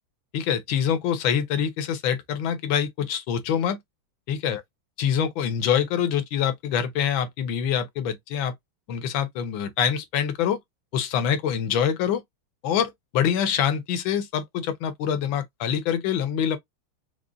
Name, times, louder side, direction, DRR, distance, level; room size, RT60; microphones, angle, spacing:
voice 1, 0.3-3.8 4.3-4.6 5.0-8.5 8.9-10.6 10.9-12.2 12.6-16.6, left 8 dB, 75° left, 1.4 m, -25 dB
4.8 x 2.1 x 2.5 m
omnidirectional pair, 2.3 m